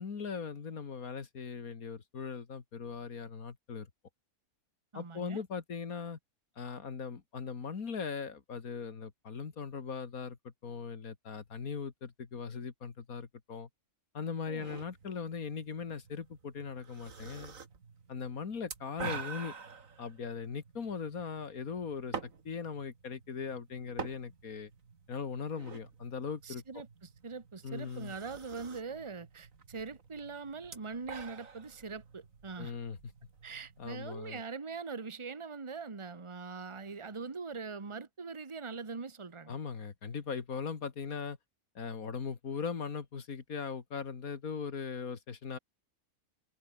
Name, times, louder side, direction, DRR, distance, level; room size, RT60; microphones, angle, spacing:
voice 1, 0.0-3.9 4.9-6.2 6.6-13.7 14.1-17.6 18.1-19.6 20.0-24.7 25.1-26.6 27.6-28.1 32.6-33.0 33.8-34.4 39.5-41.4 41.8-45.6, left 6 dB, 70° left, 2.3 m, -39 dB
voice 2, 4.9-5.4 14.5-14.7 26.4-32.7 33.4-39.6, right 4 dB, 20° right, 1.3 m, -42 dB
sound 1, 14.6-34.3, right 5 dB, 60° right, 2.4 m, -48 dB
omnidirectional pair, 1.6 m